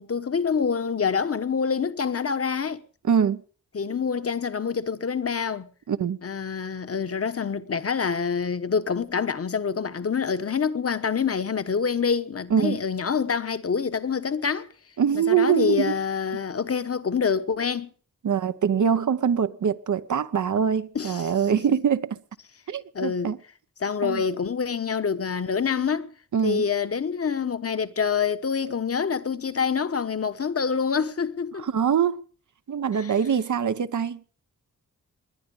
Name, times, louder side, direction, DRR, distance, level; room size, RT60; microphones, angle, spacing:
voice 1, 0.0-2.8 3.7-5.7 6.2-14.7 15.1-17.9 20.9-21.6 22.9-23.3 23.8-26.1 26.4-31.7 33.0-33.1, left 6 dB, 45° left, 1.2 m, -26 dB
voice 2, 3.0-3.4 5.9-6.2 12.5-12.8 15.0-16.0 18.2-22.2 22.7-23.4 24.0-24.2 26.3-26.6 31.5-32.2 32.7-34.2, right 7 dB, 65° right, 0.9 m, -23 dB
20.0 x 10.0 x 5.5 m
cardioid pair, 80°, 32 cm